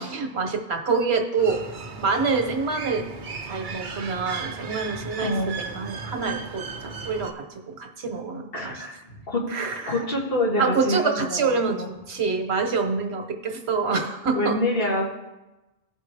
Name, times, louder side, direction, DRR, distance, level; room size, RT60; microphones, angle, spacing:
voice 1, 0.0-1.6 2.0-3.1 3.5-8.8 9.5-10.0 10.6-14.6, right 4 dB, 85° right, 5 dB, 1.3 m, -26 dB
sound 1, 1.4-7.3, right 4 dB, 55° right, 0.9 m, -36 dB
voice 2, 5.2-5.5 8.5-9.5 9.9-11.9 14.3-15.1, left 1 dB, 65° left, -3 dB, 2.1 m, -26 dB
16.0 x 5.4 x 3.3 m, 1.0 s
omnidirectional pair, 1.1 m